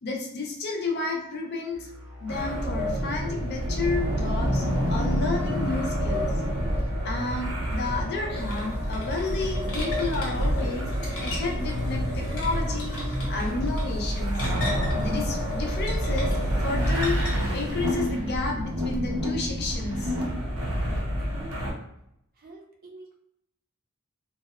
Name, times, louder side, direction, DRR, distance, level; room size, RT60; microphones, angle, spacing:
voice 1, 0.0-1.9 2.2-6.3 7.0-10.9 11.2-14.5 15.0-20.1, left 3 dB, 50° left, 1 dB, 0.4 m, -31 dB
sound 1, 1.7-18.6, left 1 dB, ahead, 0.7 m, -44 dB
sound 2, 2.3-21.7, equal, 80° right, 0.6 m, -28 dB
sound 3, 8.4-17.8, left 1 dB, 75° left, 0.9 m, -40 dB
voice 2, 21.2-21.8 22.4-23.1, right 2 dB, 40° right, 0 dB, 0.5 m, -46 dB
2.7 x 2.1 x 2.3 m, 0.79 s
head